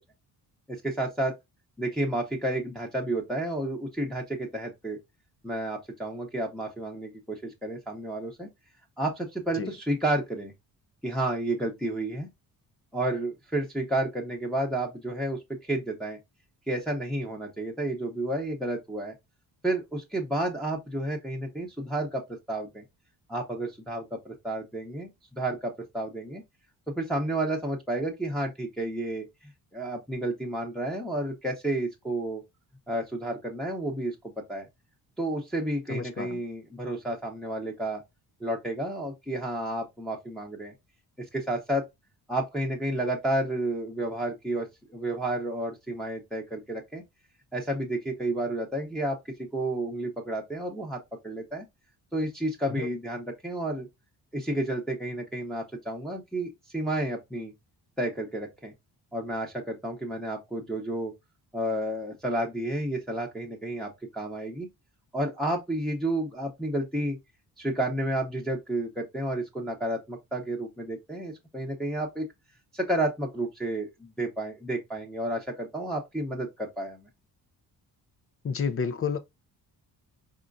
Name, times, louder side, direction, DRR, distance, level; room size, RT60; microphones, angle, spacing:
voice 1, 0.7-1.3 1.8-5.0 5.4-8.5 9.0-10.5 11.0-12.3 12.9-16.2 16.7-19.1 19.6-22.2 22.5-22.8 23.3-26.4 26.9-32.4 32.9-34.7 35.2-38.0 38.4-40.7 41.3-41.9 42.3-47.0 47.5-51.6 52.1-53.9 54.3-57.5 58.0-58.7 59.1-61.1 61.5-64.7 65.1-67.2 67.6-72.3 72.7-77.1, right 1 dB, ahead, 0.9 m, -31 dB
voice 2, 35.9-36.3 52.8-52.9 78.4-79.2, left 6 dB, 35° left, 0.5 m, -30 dB
4.3 x 3.6 x 2.5 m
cardioid pair, 100°, 39 cm